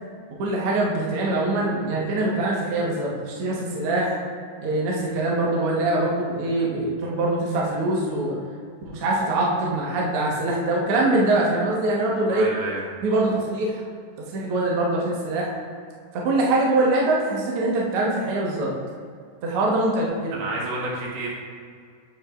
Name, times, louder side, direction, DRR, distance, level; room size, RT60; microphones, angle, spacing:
voice 1, 0.4-4.2 4.6-8.3 8.8-12.5 13.0-13.8 14.3-15.5 16.1-18.7 19.4-20.4, right 2 dB, 65° right, -3 dB, 1.4 m, -23 dB
voice 2, 12.3-12.8 20.3-21.3, right 2 dB, 85° right, -4 dB, 3.5 m, -30 dB
10.0 x 7.3 x 2.5 m, 2.1 s
omnidirectional pair, 4.4 m